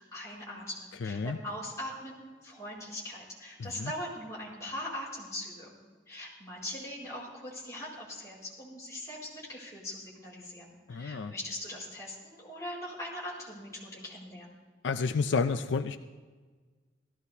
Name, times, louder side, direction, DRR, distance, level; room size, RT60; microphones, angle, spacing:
voice 1, 0.0-5.7 6.1-14.5, left 1 dB, 15° left, -7 dB, 4.6 m, -41 dB
voice 2, 1.0-1.4 3.6-3.9 10.9-11.3 14.8-16.0, left 4 dB, 80° left, 8 dB, 0.4 m, -30 dB
17.5 x 15.0 x 2.7 m, 1.4 s
head